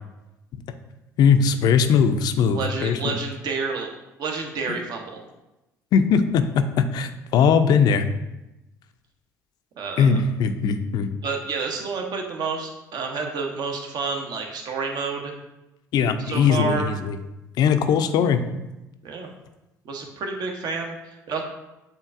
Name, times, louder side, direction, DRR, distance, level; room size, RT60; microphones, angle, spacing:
voice 1, 1.2-3.1 5.9-8.1 10.0-11.1 15.9-17.2 17.6-18.4, left 6 dB, 50° left, 9 dB, 0.4 m, -20 dB
voice 2, 2.5-3.9 4.2-5.2 9.8-10.2 11.2-15.3 16.2-16.9 19.0-19.3 19.8-21.4, right 4 dB, 50° right, 3 dB, 0.8 m, -29 dB
7.2 x 2.5 x 2.5 m, 0.97 s
figure-of-eight pair, 55°, 9 cm